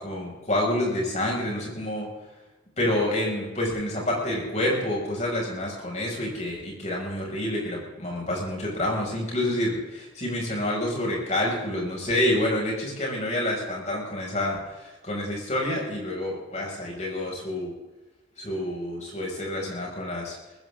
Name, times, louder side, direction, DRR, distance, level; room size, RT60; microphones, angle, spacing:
voice 1, 0.0-2.1 2.8-14.6 15.0-17.7 18.4-20.3, left 1 dB, 40° left, -2 dB, 6.1 m, -28 dB
20.5 x 15.5 x 3.7 m, 1.1 s
head